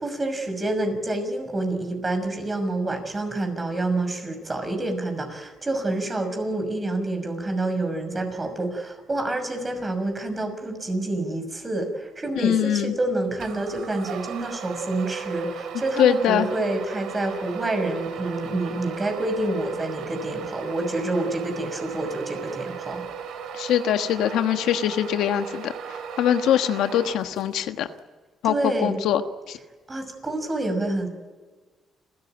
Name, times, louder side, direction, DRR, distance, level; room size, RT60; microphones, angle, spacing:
voice 1, 0.0-23.1 28.4-29.0 29.9-31.1, right 2 dB, 25° right, 6 dB, 6.1 m, -28 dB
voice 2, 12.3-12.9 16.0-16.5 23.5-25.7 26.2-27.9 28.4-29.2 29.5-29.6, left 10 dB, 85° left, 8 dB, 1.3 m, -22 dB
sound 1, 13.4-27.7, right 7 dB, 80° right, 2.5 m, -36 dB
29.5 x 14.0 x 9.0 m, 1.4 s
cardioid pair, 90°, 0 cm